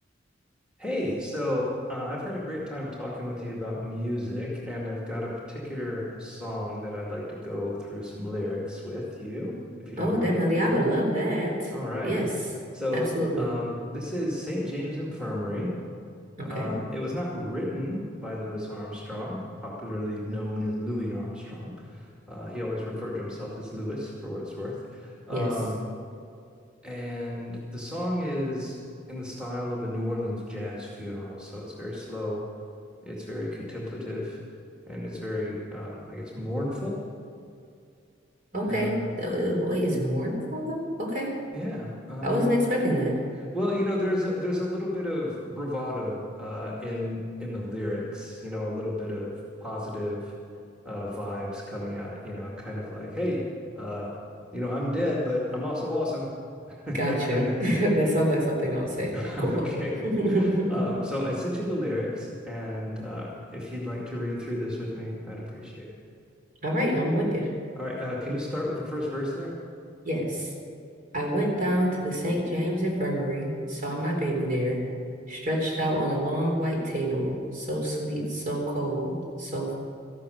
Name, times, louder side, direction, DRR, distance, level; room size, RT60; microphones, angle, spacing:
voice 1, 0.8-9.6 9.9-10.5 11.7-12.2 12.7-15.7 16.4-25.8 26.8-28.8 29.1-32.4 33.0-34.4 34.8-37.0 38.7-39.1 41.5-42.6 43.5-49.3 49.6-50.3 50.8-53.4 53.7-54.1 54.5-56.3 56.7-57.8 59.1-59.9 60.3-65.9 67.8-69.5, left 1 dB, 5° right, -5 dB, 2.2 m, -32 dB
voice 2, 10.0-11.7 12.0-12.3 12.9-13.5 16.4-16.7 25.3-25.5 38.5-41.3 42.2-43.1 56.9-59.1 59.4-59.7 60.0-60.8 66.6-67.5 70.0-70.5 71.1-74.8 75.3-79.7, equal, 45° right, -1 dB, 3.8 m, -26 dB
14.0 x 12.5 x 6.5 m, 2.4 s
head